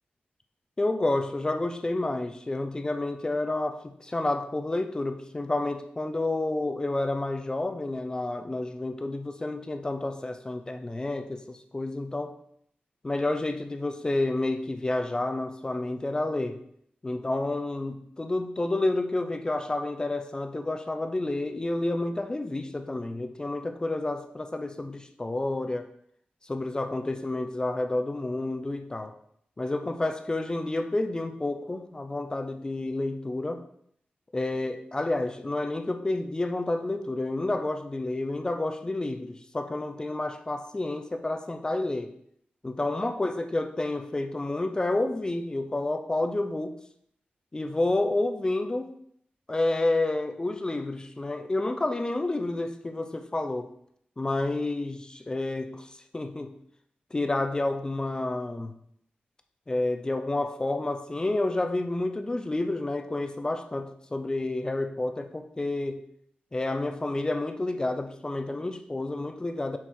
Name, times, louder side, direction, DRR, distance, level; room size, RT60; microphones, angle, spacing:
voice 1, 0.8-12.4 13.0-16.6 17.0-25.9 26.4-29.2 29.6-33.7 34.3-42.1 42.6-46.8 47.5-49.0 49.5-53.7 54.2-56.6 57.1-58.7 59.7-66.1 66.5-69.8, left 2 dB, 20° left, 7 dB, 0.5 m, -30 dB
5.7 x 4.2 x 4.5 m, 0.69 s
wide cardioid pair, 125°, 4 cm